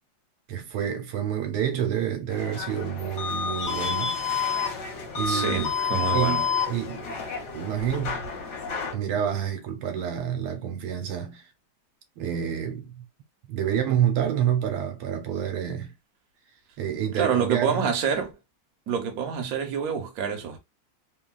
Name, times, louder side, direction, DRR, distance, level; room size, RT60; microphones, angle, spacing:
voice 1, 0.5-4.2 5.1-5.7 6.1-7.1 7.5-8.2 8.9-11.4 12.2-13.0 13.5-15.9 16.8-17.9, right 9 dB, 80° right, 1.5 m, -28 dB
sound 1, 2.3-8.9, left 6 dB, 60° left, 1.3 m, -29 dB
voice 2, 5.3-6.4 17.2-18.3 18.9-20.6, right 7 dB, 60° right, 1.0 m, -27 dB
3.4 x 2.2 x 2.3 m
omnidirectional pair, 2.3 m